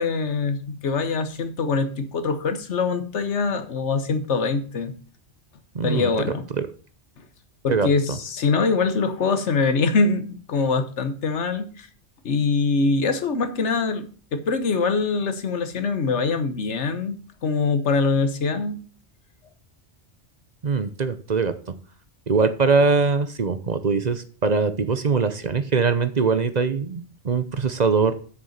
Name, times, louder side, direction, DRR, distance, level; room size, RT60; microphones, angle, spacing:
voice 1, 0.0-5.0 5.8-6.5 7.6-11.9 12.2-17.2 17.4-18.8, left 4 dB, 85° left, 10 dB, 1.4 m, -23 dB
voice 2, 5.7-6.1 6.5-6.7 7.7-8.2 20.6-21.5 22.3-28.1, right 4 dB, 45° right, 11 dB, 0.8 m, -22 dB
7.3 x 6.8 x 6.5 m, 0.41 s
omnidirectional pair, 1.2 m